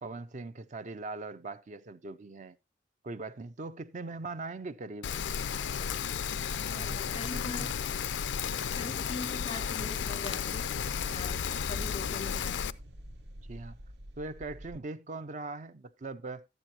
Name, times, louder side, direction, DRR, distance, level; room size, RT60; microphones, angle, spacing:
voice 1, 0.0-2.6 3.0-5.1 6.6-7.7 13.5-13.8 14.2-16.5, right 3 dB, 45° right, 0.5 m, -41 dB
Rain, 5.0-12.7, left 7 dB, 90° left, 0.4 m, -33 dB
voice 2, 6.8-7.8 8.7-12.8, left 3 dB, 25° left, 0.5 m, -42 dB
sound 1, 9.3-14.8, equal, 70° right, 0.9 m, -47 dB
12.0 x 9.3 x 2.8 m
head